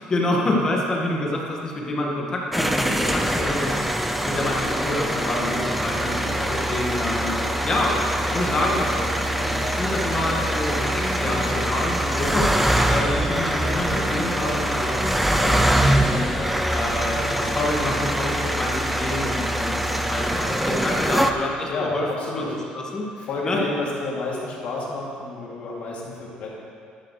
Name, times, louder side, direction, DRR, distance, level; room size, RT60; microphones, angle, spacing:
voice 1, 0.0-3.8 4.2-6.2 6.5-7.4 7.6-8.9 9.4-16.3 16.7-22.1 22.4-23.0 23.4-23.7, left 1 dB, 25° left, -2 dB, 1.7 m, -27 dB
sound 1, 2.5-21.3, right 1 dB, 5° right, 0.5 m, -24 dB
Piano, 3.2-17.6, left 1 dB, 20° right, 2.3 m, -35 dB
voice 2, 8.3-8.7 9.2-9.3 12.9-13.2 18.4-18.7 21.7-22.7 23.2-26.5, left 2 dB, 60° left, -4 dB, 2.7 m, -31 dB
11.5 x 11.5 x 3.3 m, 2.3 s
cardioid pair, 140°, 3 cm